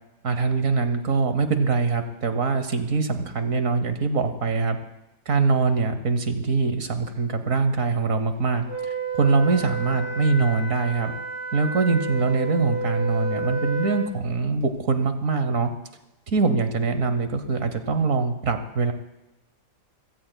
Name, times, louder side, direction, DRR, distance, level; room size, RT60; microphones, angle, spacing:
voice 1, 0.2-4.8 5.3-11.1 11.5-15.7 16.3-18.9, right 4 dB, 55° right, 9 dB, 1.2 m, -23 dB
Wind instrument woodwind instrument, 8.7-14.2, right 2 dB, 35° right, 3.0 m, -31 dB
27.0 x 17.0 x 2.2 m, 0.94 s
omnidirectional pair, 1.8 m